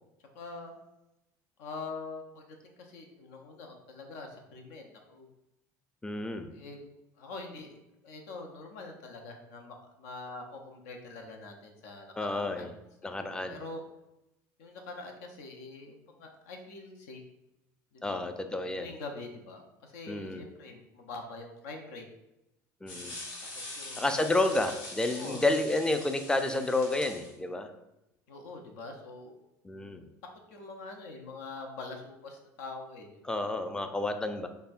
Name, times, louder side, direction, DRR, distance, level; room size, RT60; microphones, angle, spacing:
voice 1, 0.3-0.7 1.6-5.3 6.5-6.8 7.2-7.8 8.0-12.7 13.0-13.1 13.5-13.8 14.6-17.2 17.9-18.2 18.8-22.0 23.7-24.3 25.1-25.4 28.3-29.3 30.5-33.5, left 3 dB, 75° left, 3 dB, 0.7 m, -44 dB
voice 2, 6.0-6.5 12.2-12.7 13.0-13.6 18.0-18.9 20.1-20.4 22.8-23.1 24.0-27.7 29.6-30.0 33.2-34.5, left 2 dB, 10° left, 7 dB, 0.4 m, -30 dB
sound 1, 22.9-27.3, left 2 dB, 55° left, 1.1 m, -43 dB
5.2 x 2.1 x 2.5 m, 0.91 s
hypercardioid pair, 80°, 9 cm